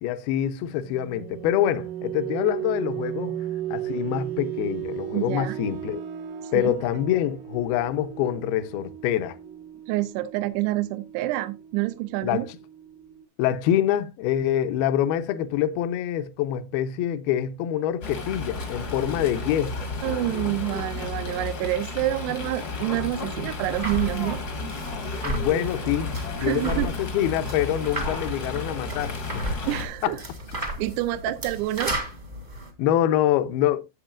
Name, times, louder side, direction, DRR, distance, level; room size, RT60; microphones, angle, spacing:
voice 1, 0.0-3.4 3.7-6.0 6.5-9.4 12.2-12.6 13.4-19.8 25.3-29.4 30.0-30.1 32.8-33.8, left 11 dB, 75° left, 2.4 m, -25 dB
sound 1, 0.7-13.3, right 11 dB, 70° right, 2.3 m, -36 dB
voice 2, 5.1-5.6 6.4-6.7 9.9-12.5 20.0-24.4 26.4-26.9 29.7-30.2 30.8-31.9, right 16 dB, 85° right, 2.7 m, -27 dB
Fowl, 18.0-29.9, left 3 dB, 50° left, 1.1 m, -33 dB
sound 2, 23.6-32.7, right 1 dB, 30° right, 1.0 m, -34 dB
13.0 x 7.9 x 2.4 m
omnidirectional pair, 4.9 m